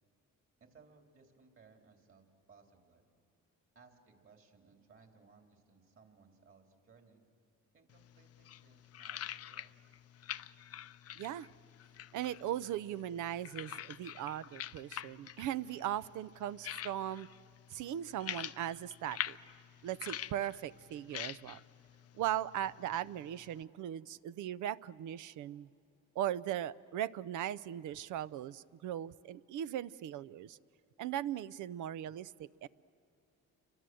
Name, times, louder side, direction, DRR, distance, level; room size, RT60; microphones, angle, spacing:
voice 1, 0.6-3.1 3.8-7.2 7.7-9.7, right 4 dB, 45° right, 3 dB, 3.6 m, -63 dB
sound 1, 7.9-23.6, left 11 dB, 55° left, 0.6 m, -47 dB
voice 2, 11.2-11.5 12.1-17.3 17.7-19.4 19.8-21.6 22.1-25.7 26.2-30.6 31.0-32.7, right 11 dB, 80° right, 17 dB, 0.6 m, -38 dB
29.0 x 24.5 x 7.7 m, 2.6 s
cardioid pair, 90°, 30 cm